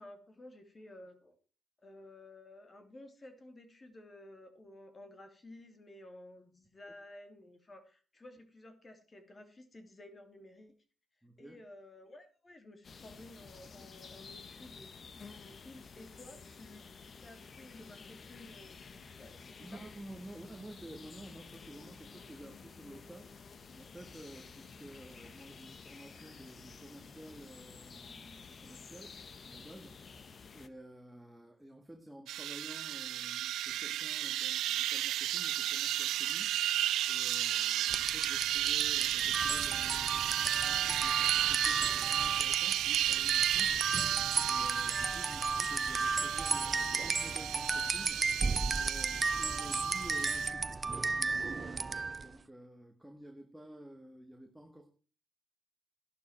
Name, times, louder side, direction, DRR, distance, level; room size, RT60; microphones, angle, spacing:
voice 1, 0.0-1.3 1.8-10.7 11.4-19.8 20.3-20.4, left 1 dB, 30° left, 7 dB, 3.0 m, -54 dB
voice 2, 11.2-11.6 19.6-29.2 29.4-54.9, right 1 dB, 5° right, 4 dB, 1.9 m, -52 dB
sound 1, 12.8-30.7, left 5 dB, 45° left, 1.3 m, -52 dB
sound 2, 32.3-50.5, right 13 dB, 85° right, 0.5 m, -33 dB
sound 3, 37.9-52.3, right 4 dB, 30° right, 0.8 m, -34 dB
12.5 x 11.5 x 4.5 m, 0.37 s
cardioid pair, 90°, 0 cm